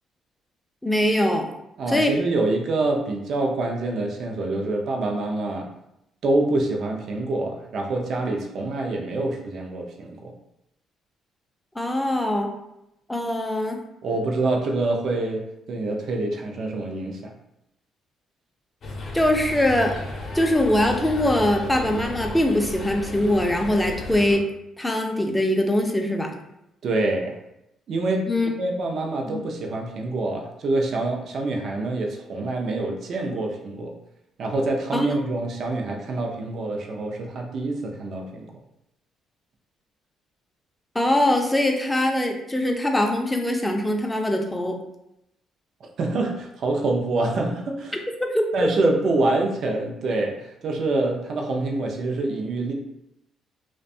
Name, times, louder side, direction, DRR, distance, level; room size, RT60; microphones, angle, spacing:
voice 1, 0.8-1.5 1.9-2.1 11.8-12.5 13.1-13.8 19.1-19.9 20.3-24.5 24.8-26.3 28.3-28.5 29.3-29.4 34.9-35.3 40.9-44.8 48.3-48.7, left 1 dB, 10° left, 3 dB, 0.4 m, -22 dB
voice 2, 1.8-5.7 6.2-10.3 14.0-17.3 26.8-27.4 27.9-28.3 28.6-33.9 34.4-38.5 46.0-48.0 48.5-52.7, right 2 dB, 60° right, 1 dB, 0.5 m, -26 dB
sound 1, 18.8-24.4, left 1 dB, 55° left, 0.6 m, -34 dB
2.5 x 2.2 x 2.6 m, 0.84 s
cardioid pair, 85°, 0 cm